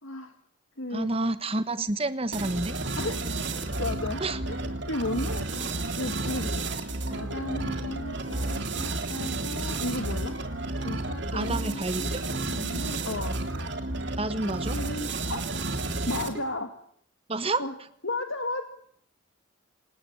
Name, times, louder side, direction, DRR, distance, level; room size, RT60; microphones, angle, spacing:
voice 1, 0.0-0.3 0.8-1.1 3.0-3.2 3.8-4.2 4.5-6.7 7.1-10.4 10.8-13.4 14.4-15.5 16.1-16.7 17.6-17.8 18.0-18.7, left 2 dB, 70° left, 6 dB, 2.0 m, -34 dB
voice 2, 0.9-2.7 4.2-4.4 11.3-12.2 14.2-14.8 17.3-17.6, right 2 dB, 25° right, 12 dB, 1.2 m, -29 dB
sound 1, 2.3-16.5, right 2 dB, 55° right, 3.1 m, -32 dB
27.0 x 19.5 x 8.7 m, 0.67 s
head